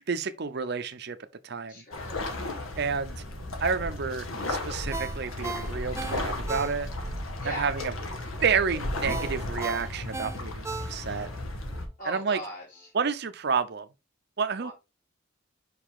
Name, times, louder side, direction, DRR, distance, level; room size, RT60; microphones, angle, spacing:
voice 1, 0.1-1.2 1.4-1.8 2.8-3.2 3.6-6.9 7.4-7.9 8.4-11.3 12.0-12.4 12.9-13.9 14.4-14.7, right 5 dB, 55° right, 0.6 m, -29 dB
voice 2, 1.7-2.4 7.4-7.6 12.0-12.9 14.6-14.7, equal, 40° left, 2.5 m, -39 dB
sound 1, 1.9-11.9, left 1 dB, 85° left, 1.4 m, -34 dB
Ringtone, 4.9-7.2 7.5-7.7 9.1-11.3 11.7-11.8, right 4 dB, 15° right, 0.3 m, -36 dB
5.4 x 5.0 x 3.6 m
head